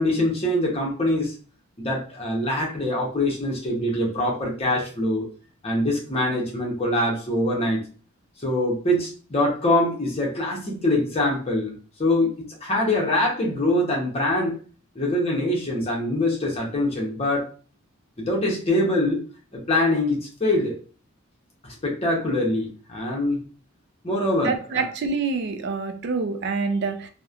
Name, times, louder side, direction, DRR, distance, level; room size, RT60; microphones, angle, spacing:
voice 1, 0.0-1.3 1.8-5.2 5.6-7.8 8.4-11.7 12.0-12.3 12.6-14.6 14.9-17.5 18.2-19.2 19.5-20.8 21.6-23.4 24.0-24.9, left 1 dB, 30° left, -2 dB, 0.7 m, -24 dB
voice 2, 24.4-27.1, right 4 dB, 55° right, 8 dB, 0.4 m, -26 dB
2.9 x 2.1 x 2.3 m, 0.38 s
head